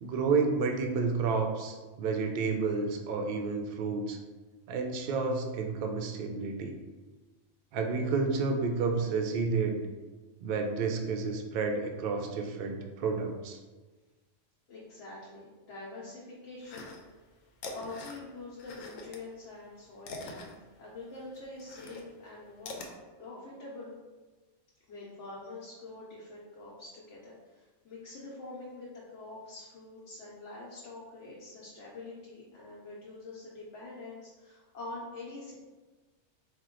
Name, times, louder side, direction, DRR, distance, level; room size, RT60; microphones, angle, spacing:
voice 1, 0.0-4.2 4.7-6.8 7.7-9.8 10.4-13.6, right 4 dB, 65° right, 4 dB, 0.5 m, -30 dB
voice 2, 14.7-17.0 17.7-23.9 24.9-28.9 29.1-35.5, left 2 dB, 65° left, -6 dB, 1.1 m, -45 dB
sound 1, 16.6-17.3 17.5-19.2 19.5-22.9, left 2 dB, 85° left, 1.0 m, -44 dB
4.4 x 2.2 x 3.7 m, 1.3 s
omnidirectional pair, 1.4 m